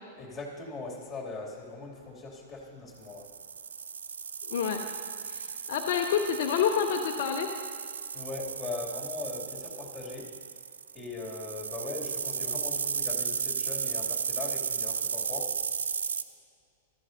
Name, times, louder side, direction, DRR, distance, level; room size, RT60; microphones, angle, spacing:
voice 1, 0.2-3.3 8.1-10.3 10.9-15.6, left 3 dB, 15° left, -2 dB, 2.7 m, -40 dB
sound 1, 3.1-16.2, right 6 dB, 75° right, 0.4 m, -34 dB
voice 2, 4.5-4.8 5.3-7.5, left 7 dB, 55° left, 4 dB, 0.6 m, -28 dB
14.5 x 13.5 x 2.7 m, 2.2 s
figure-of-eight pair, 100°, 0 cm